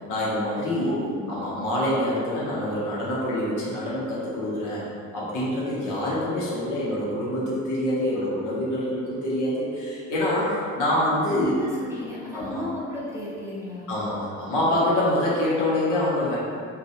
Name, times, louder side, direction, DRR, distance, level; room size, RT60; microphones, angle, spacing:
voice 1, 0.1-0.9 1.3-11.5 12.3-12.6 13.9-16.4, left 1 dB, 85° left, -7 dB, 0.8 m, -26 dB
voice 2, 0.7-1.3 11.2-13.9, left 1 dB, 10° right, -8 dB, 0.7 m, -34 dB
2.2 x 2.2 x 2.7 m, 2.3 s
cardioid pair, 90°, 30 cm